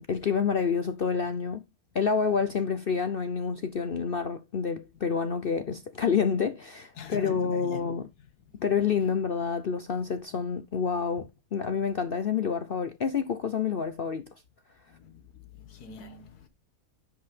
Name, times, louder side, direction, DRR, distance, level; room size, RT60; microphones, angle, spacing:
voice 1, 0.0-1.6 1.9-8.1 8.6-14.2, left 6 dB, 55° left, 0.6 m, -28 dB
voice 2, 7.0-7.9 14.9-15.2 15.6-16.5, left 5 dB, 75° left, 1.8 m, -43 dB
11.0 x 6.2 x 3.2 m
omnidirectional pair, 1.7 m